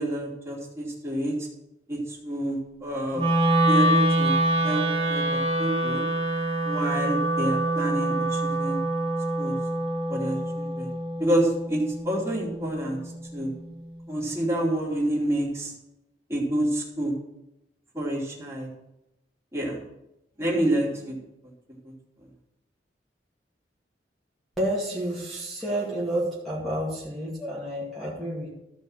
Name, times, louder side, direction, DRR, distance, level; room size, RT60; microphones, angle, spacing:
voice 1, 0.0-1.5 1.9-3.3 3.7-6.0 6.6-8.8 9.4-9.6 10.1-10.9 11.2-13.0 13.3-13.5 14.1-15.7 16.3-17.1 17.9-18.7 19.5-19.8 20.4-21.2 21.8-21.9, right 1 dB, 15° right, -4 dB, 3.0 m, -28 dB
Wind instrument woodwind instrument, 3.1-13.3, right 1 dB, 30° right, 2.3 m, -25 dB
voice 2, 24.6-28.5, right 1 dB, ahead, -7 dB, 2.2 m, -30 dB
14.0 x 5.4 x 6.5 m, 0.88 s
head